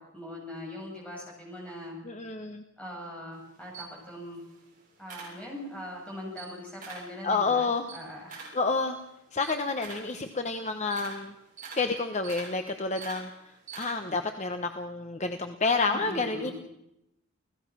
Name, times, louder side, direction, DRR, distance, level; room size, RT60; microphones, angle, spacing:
voice 1, 0.1-2.0 2.8-4.4 5.0-8.3 15.9-16.5, left 1 dB, 5° left, -2 dB, 7.9 m, -41 dB
voice 2, 2.0-2.6 7.2-7.9 8.3-9.0 9.3-11.3 11.7-16.5, left 4 dB, 35° left, 6 dB, 1.1 m, -29 dB
Camera, 3.3-5.9 6.2-7.2 7.5-14.3, right 5 dB, 40° right, 7.3 m, -45 dB
29.0 x 17.0 x 6.3 m, 0.85 s
head